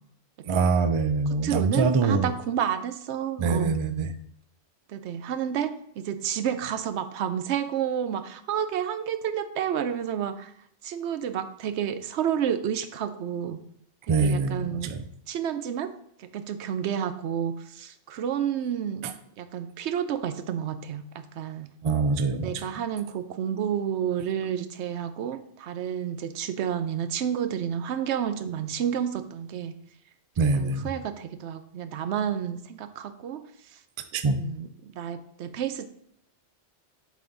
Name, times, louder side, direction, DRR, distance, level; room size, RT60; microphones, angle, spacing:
voice 1, 0.5-2.3 3.4-4.1 14.1-15.0 19.0-19.1 21.8-22.7 30.4-30.9 34.1-34.4, right 4 dB, 50° right, 10 dB, 0.3 m, -24 dB
voice 2, 1.4-3.8 4.9-10.5 10.8-13.6 14.2-14.9 15.3-15.9 16.2-19.0 19.4-21.7 22.3-29.7 30.6-33.4 34.4-35.8, right 9 dB, 80° right, 11 dB, 0.9 m, -30 dB
7.4 x 4.2 x 3.9 m, 0.71 s
omnidirectional pair, 1.1 m